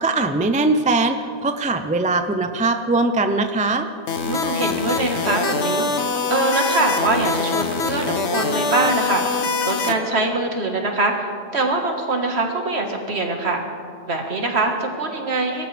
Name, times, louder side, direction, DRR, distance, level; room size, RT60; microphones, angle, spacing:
voice 1, 0.0-3.9, right 3 dB, 10° right, 7 dB, 0.4 m, -21 dB
sound 1, 4.1-9.9, left 4 dB, 65° left, 1.3 m, -24 dB
voice 2, 4.3-13.6 14.1-15.7, right 2 dB, 60° right, 2 dB, 2.0 m, -23 dB
24.0 x 13.5 x 3.5 m, 2.2 s
omnidirectional pair, 1.2 m